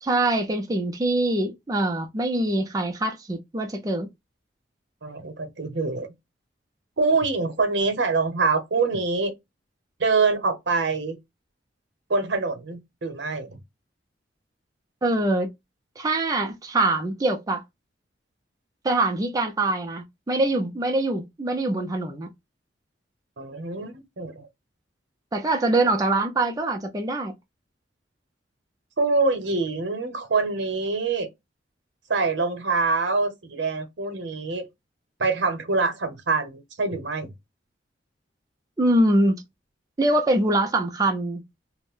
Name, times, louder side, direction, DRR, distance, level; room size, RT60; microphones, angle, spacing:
voice 1, 0.0-4.1 15.0-15.5 16.0-17.6 18.8-22.3 25.3-27.3 38.8-39.4 40.0-41.4, right 2 dB, 20° right, 0.4 m, -23 dB
voice 2, 5.0-6.1 7.0-9.3 10.0-11.2 12.1-13.6 23.4-24.5 29.0-31.3 32.1-34.7 35.2-37.3, right 4 dB, 70° right, 0.8 m, -25 dB
2.4 x 2.1 x 3.5 m
head